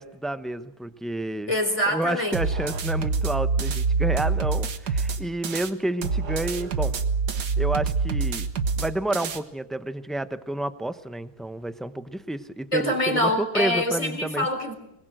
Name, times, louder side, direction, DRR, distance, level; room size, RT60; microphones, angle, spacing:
voice 1, 0.0-1.5 1.9-6.9 7.6-8.5 8.8-14.5, right 1 dB, ahead, 11 dB, 0.5 m, -30 dB
voice 2, 1.5-2.4 12.7-14.7, left 1 dB, 20° left, 5 dB, 4.1 m, -25 dB
sound 1, 2.3-5.7 6.0-9.4, right 4 dB, 75° right, 2.0 m, -26 dB
24.5 x 21.0 x 7.8 m, 0.80 s
omnidirectional pair, 1.7 m